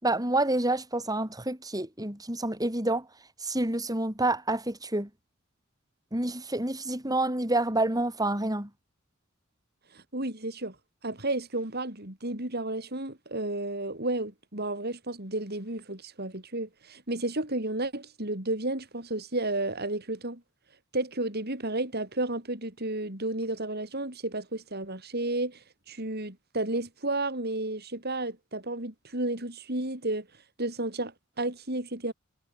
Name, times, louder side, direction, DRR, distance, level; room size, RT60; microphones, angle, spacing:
voice 1, 0.0-3.1 3.4-5.1 6.1-8.7, right 2 dB, 20° right, 6.4 m, -28 dB
voice 2, 9.9-10.8 11.0-20.4 20.9-30.3 30.6-32.1, right 2 dB, 50° right, 5.6 m, -32 dB
head